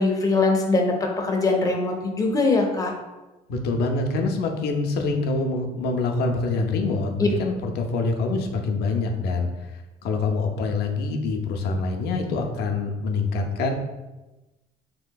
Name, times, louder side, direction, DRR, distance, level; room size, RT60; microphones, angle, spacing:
voice 1, 0.0-2.9 7.2-7.3, left 3 dB, 20° left, 1 dB, 0.5 m, -22 dB
voice 2, 3.5-9.5 10.0-13.7, left 3 dB, 75° left, 3 dB, 0.5 m, -25 dB
3.2 x 2.7 x 2.2 m, 1.1 s
cardioid pair, 110°, 17 cm